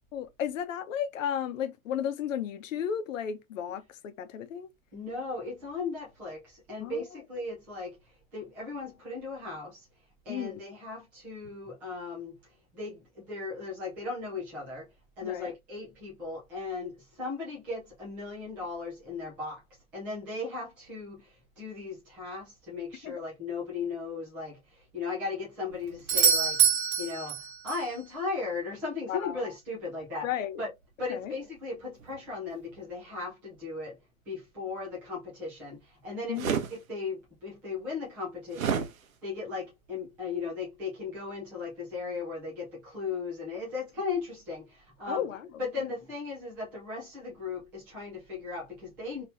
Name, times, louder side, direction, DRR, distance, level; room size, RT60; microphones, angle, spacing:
voice 1, 0.1-4.7 6.8-7.0 10.3-10.6 15.2-15.5 23.0-23.2 29.1-29.3 30.2-30.6 31.1-31.3 36.3-36.5 45.1-45.5, left 9 dB, 65° left, 0.8 m, -34 dB
voice 2, 4.9-8.0 8.3-9.9 10.2-12.4 12.7-14.8 15.2-19.6 19.9-30.3 30.6-30.7 31.0-34.0 34.3-45.2 45.6-49.2, left 4 dB, 5° right, 0.3 m, -37 dB
Doorbell, 26.1-27.9 32.0-32.1, right 7 dB, 55° right, 1.3 m, -25 dB
sound 1, 36.3-36.7 38.5-38.9, right 7 dB, 75° right, 1.0 m, -28 dB
2.9 x 2.6 x 3.3 m
hypercardioid pair, 140°, 43 cm